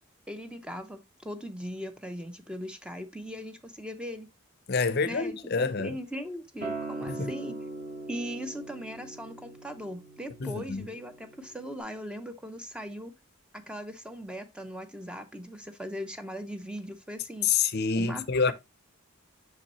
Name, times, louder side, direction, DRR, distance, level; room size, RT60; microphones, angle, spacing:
voice 1, 0.3-4.3 5.1-7.6 8.1-13.1 13.5-17.5 18.0-18.5, equal, 5° right, 0.6 m, -39 dB
voice 2, 4.7-6.0 7.0-7.3 10.4-10.9 17.4-18.5, left 5 dB, 45° left, 0.6 m, -27 dB
Acoustic guitar, 6.6-11.8, right 3 dB, 40° right, 1.8 m, -41 dB
6.1 x 5.8 x 2.9 m
head